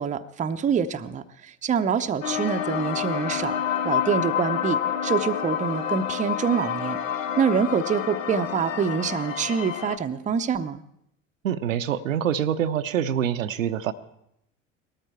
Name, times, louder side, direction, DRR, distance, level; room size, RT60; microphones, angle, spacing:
voice 1, 0.0-3.6 3.8-7.0 7.4-10.8, right 6 dB, 20° right, 8 dB, 0.6 m, -26 dB
sound 1, 2.2-10.0, left 8 dB, 75° left, 0.7 m, -28 dB
voice 2, 11.4-13.9, right 9 dB, 75° right, 10 dB, 0.7 m, -25 dB
19.0 x 13.5 x 4.5 m, 0.77 s
figure-of-eight pair, 65°, 39 cm